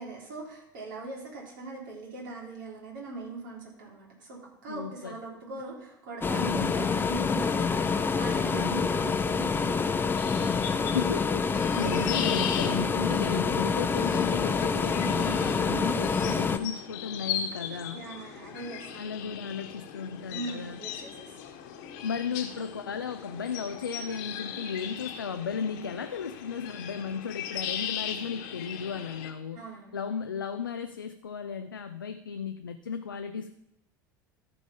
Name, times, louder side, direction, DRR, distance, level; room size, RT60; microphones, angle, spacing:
voice 1, 0.0-10.6 15.7-15.8 17.9-19.5 20.3-21.3 29.6-30.0, right 3 dB, 65° right, -3 dB, 3.9 m, -41 dB
voice 2, 4.7-5.2 6.4-6.8 8.5-8.9 10.8-18.0 18.9-20.8 22.0-29.6 29.9-33.5, left 6 dB, 85° left, 7 dB, 0.5 m, -35 dB
sound 1, 6.2-16.6, left 5 dB, 20° left, 0.7 m, -27 dB
sound 2, 10.2-29.3, left 8 dB, 65° left, 1.3 m, -38 dB
14.0 x 5.0 x 5.4 m, 0.80 s
figure-of-eight pair, 75°, 11 cm